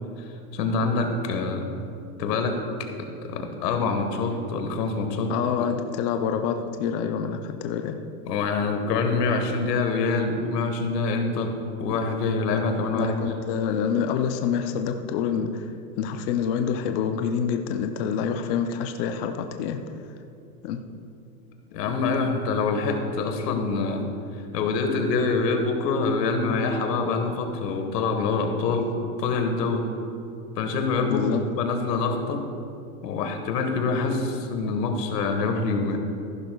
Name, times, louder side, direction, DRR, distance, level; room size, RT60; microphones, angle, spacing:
voice 1, 0.2-1.7 2.2-2.6 3.2-5.3 5.6-5.7 8.2-11.5 11.8-13.4 21.7-24.0 24.5-28.9 29.2-29.9 30.5-32.4 33.0-36.0, left 4 dB, 85° left, 5 dB, 1.5 m, -25 dB
voice 2, 5.3-8.0 13.0-15.7 16.0-19.8 20.6-20.8 28.8-28.9 31.1-31.4, left 7 dB, 40° left, 6 dB, 0.5 m, -27 dB
14.5 x 11.5 x 2.3 m, 2.6 s
supercardioid pair, 145°, 48 cm